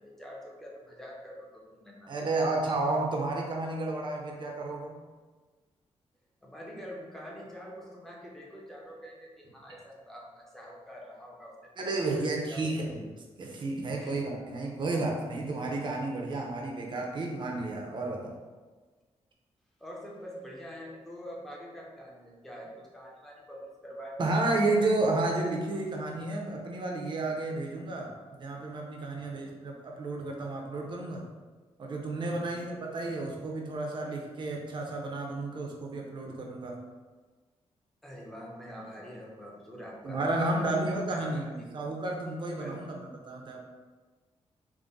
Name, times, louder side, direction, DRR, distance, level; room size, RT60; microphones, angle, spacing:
voice 1, 0.0-2.5 6.4-12.8 14.0-14.2 19.8-24.2 24.5-24.8 29.0-29.6 32.2-32.6 38.0-40.2 40.5-40.8 41.1-41.8 42.5-42.9, equal, 5° left, -3 dB, 0.7 m, -46 dB
voice 2, 2.1-5.0 11.8-13.1 13.4-18.4 24.2-28.1 28.4-31.3 31.8-36.7 40.0-43.6, right 2 dB, 45° right, 0 dB, 0.6 m, -31 dB
3.6 x 2.1 x 3.9 m, 1.4 s
wide cardioid pair, 135°, 11 cm